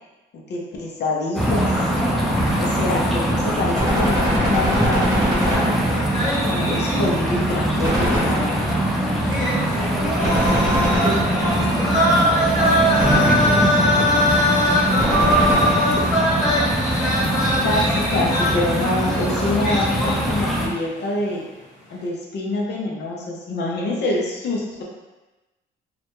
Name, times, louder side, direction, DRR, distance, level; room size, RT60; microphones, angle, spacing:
voice 1, 0.5-1.7 2.6-8.7 17.6-21.4 21.9-24.8, left 2 dB, 60° left, -2 dB, 0.6 m, -26 dB
sound 1, 1.3-20.7, right 1 dB, ahead, 0.5 m, -22 dB
Gunshot gunfire, 3.7-6.3 7.8-8.9 10.2-11.7 13.0-13.8 15.0-16.1, equal, 15° right, 0.9 m, -24 dB
sound 2, 6.1-7.5 7.8-7.9 9.2-20.7 21.0-21.3, equal, 15° left, 1.2 m, -22 dB
voice 2, 9.7-10.6 11.0-11.6 12.6-16.5 19.0-19.6, right 2 dB, 45° right, -2 dB, 0.7 m, -37 dB
2.4 x 2.1 x 3.0 m, 1.1 s
cardioid pair, 90°, 20 cm